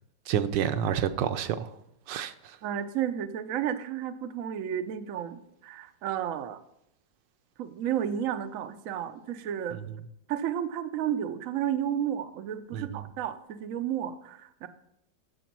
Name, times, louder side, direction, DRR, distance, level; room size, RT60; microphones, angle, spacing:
voice 1, 0.3-1.8 2.1-2.6 9.9-10.0 12.7-13.1, right 9 dB, 85° right, 1.4 m, -29 dB
voice 2, 2.6-6.6 7.6-9.8 10.3-14.7, right 9 dB, 60° right, 0.9 m, -32 dB
9.1 x 7.0 x 5.9 m
omnidirectional pair, 1.9 m